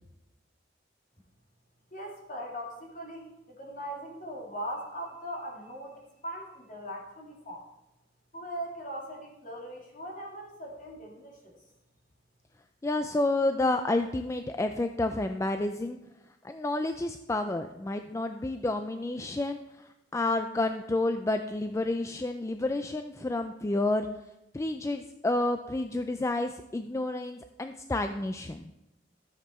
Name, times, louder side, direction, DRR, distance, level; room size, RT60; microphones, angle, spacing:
voice 1, 1.9-7.7 8.3-11.6, equal, 45° left, -1 dB, 2.4 m, -40 dB
voice 2, 12.8-16.0 16.4-24.1 24.5-28.7, left 2 dB, 15° left, 7 dB, 0.3 m, -30 dB
13.0 x 7.4 x 4.3 m, 0.94 s
head